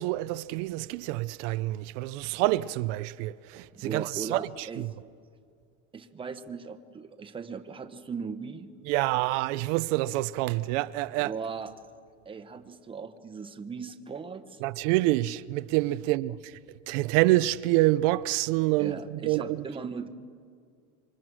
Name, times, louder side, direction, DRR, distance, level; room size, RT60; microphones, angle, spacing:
voice 1, 0.0-4.9 8.9-11.3 14.6-16.6 16.9-19.6, right 18 dB, 85° right, 0.7 m, -27 dB
voice 2, 3.8-4.9 5.9-8.7 11.1-11.7 12.2-14.6 18.8-20.1, right 5 dB, 15° right, 1.1 m, -38 dB
27.0 x 25.5 x 6.2 m
cardioid pair, 165°, 36 cm